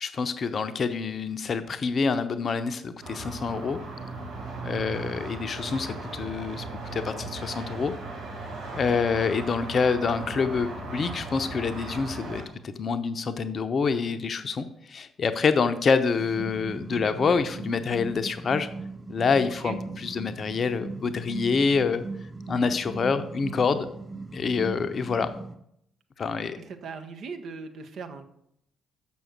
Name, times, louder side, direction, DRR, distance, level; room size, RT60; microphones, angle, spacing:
voice 1, 0.0-3.8 4.6-6.6 6.9-7.9 8.7-18.7 19.1-22.0 22.5-23.9 24.3-25.3 26.2-26.6, left 5 dB, 45° left, 10 dB, 0.7 m, -26 dB
sound 1, 3.0-12.4, right 2 dB, 70° right, 2.2 m, -37 dB
sound 2, 16.2-25.5, right 3 dB, 20° right, 1.0 m, -38 dB
voice 2, 26.4-28.2, right 4 dB, 55° right, 6 dB, 0.9 m, -39 dB
7.0 x 6.2 x 6.2 m, 0.74 s
figure-of-eight pair, 40°, 0 cm